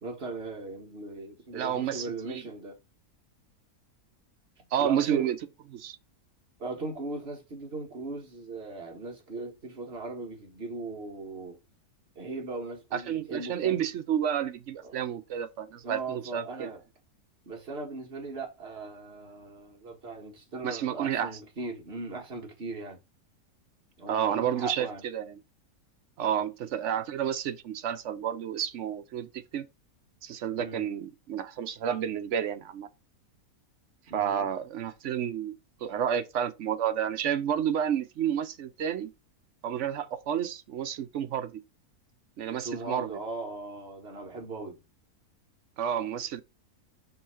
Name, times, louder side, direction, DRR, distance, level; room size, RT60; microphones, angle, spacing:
voice 1, 0.0-2.8 4.8-5.3 6.6-11.6 12.2-13.8 14.8-15.0 15.8-16.8 17.5-23.0 24.0-25.0 30.6-30.8 34.1-34.5 42.6-44.8, right 3 dB, 40° right, 1.7 m, -38 dB
voice 2, 1.5-2.4 4.7-5.4 5.7-6.0 12.9-16.7 20.6-21.4 24.1-25.4 26.2-29.7 30.2-32.9 34.1-35.6 35.8-39.1 39.6-41.6 42.4-43.2 45.8-46.4, right 9 dB, 60° right, 0.9 m, -30 dB
5.6 x 3.1 x 5.6 m
omnidirectional pair, 1.6 m